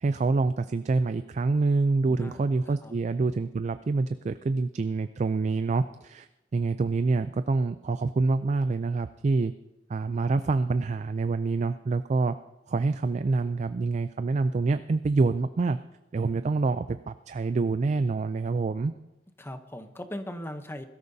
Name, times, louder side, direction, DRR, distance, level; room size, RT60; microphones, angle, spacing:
voice 1, 0.0-6.3 6.5-9.5 9.9-12.4 12.7-15.8 16.1-18.9, right 3 dB, 40° right, 11 dB, 0.3 m, -26 dB
voice 2, 2.0-3.0 19.4-20.9, left 1 dB, 15° left, 8 dB, 0.8 m, -39 dB
21.0 x 13.5 x 2.7 m, 0.98 s
head